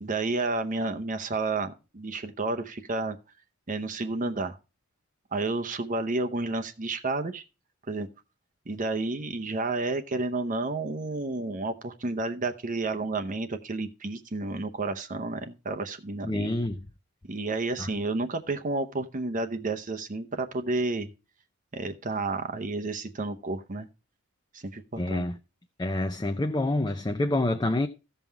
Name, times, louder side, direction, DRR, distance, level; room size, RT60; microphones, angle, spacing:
voice 1, 0.0-3.2 3.7-4.6 5.3-7.4 7.9-8.1 8.7-16.5 17.3-21.1 21.7-23.9 24.5-25.2, right 3 dB, 40° right, 0.8 m, -31 dB
voice 2, 16.2-16.8 17.8-17.9 25.0-25.4 25.8-27.9, left 1 dB, 20° left, 0.5 m, -27 dB
15.0 x 5.6 x 4.5 m
head